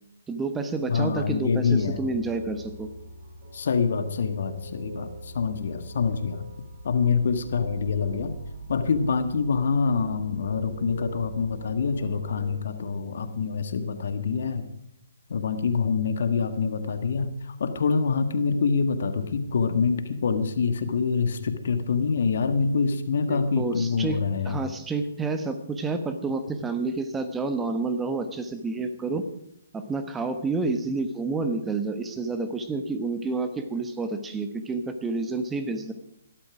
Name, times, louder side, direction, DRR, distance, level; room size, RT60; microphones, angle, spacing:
voice 1, 0.3-2.9 23.3-29.3 29.7-35.9, right 3 dB, 10° right, 8 dB, 1.2 m, -29 dB
voice 2, 0.9-2.0 3.5-6.5 6.8-8.3 8.7-14.7 15.3-24.6, left 5 dB, 60° left, 9 dB, 1.7 m, -26 dB
sound 1, 1.6-12.6, right 2 dB, 40° right, 4.2 m, -42 dB
19.5 x 12.5 x 5.0 m, 0.77 s
figure-of-eight pair, 135°, 0 cm